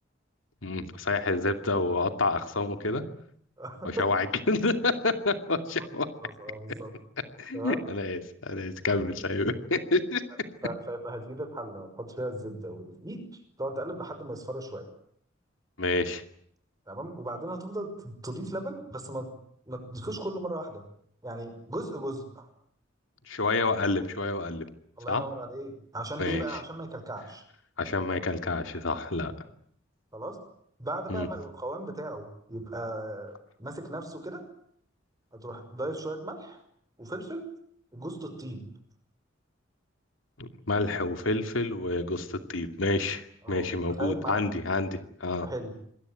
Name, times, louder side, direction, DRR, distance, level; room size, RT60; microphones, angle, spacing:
voice 1, 0.6-3.0 3.8-6.1 7.4-10.2 15.8-16.2 23.3-24.6 25.1-25.2 26.2-26.4 27.8-29.3 31.1-31.3 40.4-45.5, left 2 dB, 85° left, 7 dB, 2.5 m, -28 dB
voice 2, 3.6-4.0 6.2-6.9 7.5-7.8 10.6-14.9 16.9-19.3 19.7-20.8 21.2-22.5 25.0-27.4 30.1-30.4 30.8-34.4 35.3-36.6 37.0-37.5 37.9-38.7 43.4-43.7 44.0-44.5 45.4-45.8, right 1 dB, 20° right, 8 dB, 5.8 m, -37 dB
26.5 x 21.5 x 9.4 m, 0.67 s
head